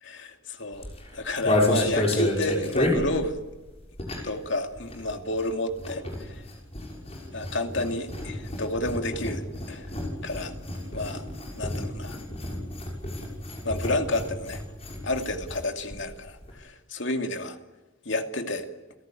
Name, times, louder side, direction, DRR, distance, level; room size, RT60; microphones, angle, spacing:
voice 1, 0.0-0.9 1.1-3.4 4.2-6.5 7.3-9.9 10.2-10.5 10.9-11.2 11.6-12.2 13.6-14.6 15.0-17.6 18.1-18.7, left 2 dB, 65° left, 5 dB, 2.5 m, -30 dB
sound 1, 0.7-4.5 4.7-15.6 15.9-16.0 16.2-16.5, left 1 dB, 30° left, 6.2 m, -30 dB
29.5 x 17.5 x 9.2 m, 1.1 s
head